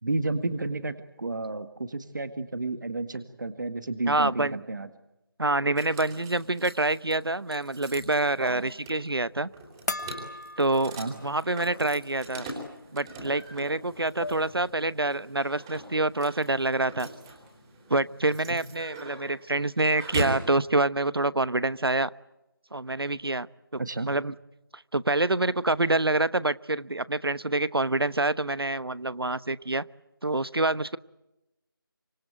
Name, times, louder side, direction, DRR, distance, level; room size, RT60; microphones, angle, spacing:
voice 1, 0.0-4.9 8.4-8.7 11.0-11.2 18.5-18.6 23.8-24.1, right 2 dB, 55° right, 10 dB, 1.9 m, -31 dB
voice 2, 4.1-4.6 5.4-9.5 10.6-12.5 12.9-17.1 17.9-22.1 22.7-23.5 23.7-23.8 24.1-24.3 24.7-29.8 30.2-31.0, right 2 dB, 90° right, 17 dB, 1.1 m, -26 dB
sound 1, 5.8-20.5, right 2 dB, 10° right, 3.6 m, -41 dB
sound 2, 9.9-11.5 11.9-12.0 13.5-13.6 13.9-14.6, left 2 dB, 45° left, 1.2 m, -37 dB
25.5 x 24.5 x 9.3 m, 0.93 s
figure-of-eight pair, 170°, 12 cm